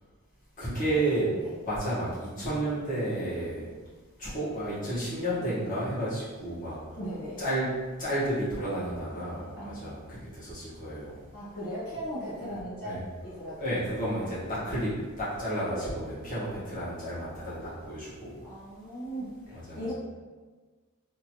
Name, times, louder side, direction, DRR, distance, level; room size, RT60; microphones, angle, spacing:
voice 1, 0.6-1.3 1.6-3.6 4.2-6.8 7.4-7.7 8.0-11.1 12.8-13.0 13.6-14.4 14.6-14.9 15.2-18.3 19.7-19.8, right 1 dB, 40° left, -10 dB, 1.4 m, -31 dB
voice 2, 7.0-7.4 9.6-9.8 11.3-13.7 14.2-14.5 15.7-16.0 18.4-19.9, equal, 70° left, -9 dB, 1.0 m, -38 dB
2.9 x 2.5 x 3.0 m, 1.4 s
head